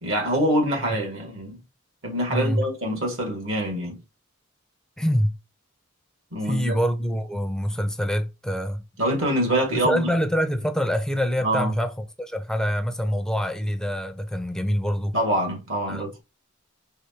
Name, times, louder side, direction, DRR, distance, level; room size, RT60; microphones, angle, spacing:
voice 1, 0.0-1.6 2.0-4.0 6.3-6.8 9.0-10.1 11.4-11.8 15.1-16.2, right 1 dB, 70° right, 1.9 m, -25 dB
voice 2, 2.3-2.6 5.0-5.4 6.4-8.8 9.8-15.1 15.9-16.2, equal, 5° left, 0.4 m, -25 dB
4.8 x 3.3 x 2.8 m
head